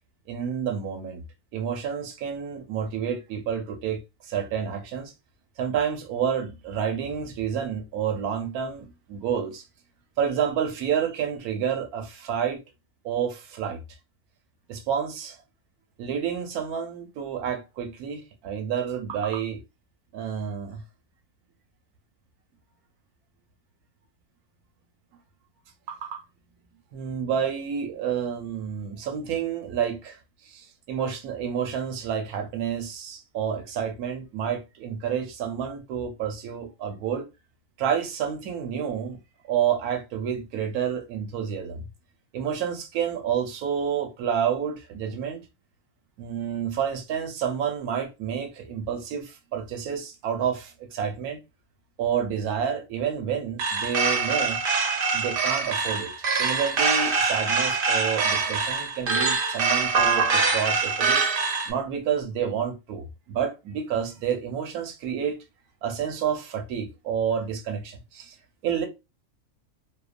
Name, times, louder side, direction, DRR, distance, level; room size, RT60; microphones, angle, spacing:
voice 1, 0.3-1.2 1.5-5.1 5.6-9.7 10.2-12.6 13.0-13.8 14.7-15.4 16.0-19.6 20.1-20.8 25.9-26.2 26.9-37.3 37.8-39.2 39.4-41.9 42.3-45.4 46.2-51.4 52.0-54.6 55.1-61.2 61.7-65.4 65.8-68.4 68.6-68.9, right 8 dB, 90° right, 1.1 m, -29 dB
sound 1, 53.6-61.7, right 4 dB, 60° right, 0.5 m, -24 dB
3.0 x 2.0 x 2.4 m
omnidirectional pair, 1.5 m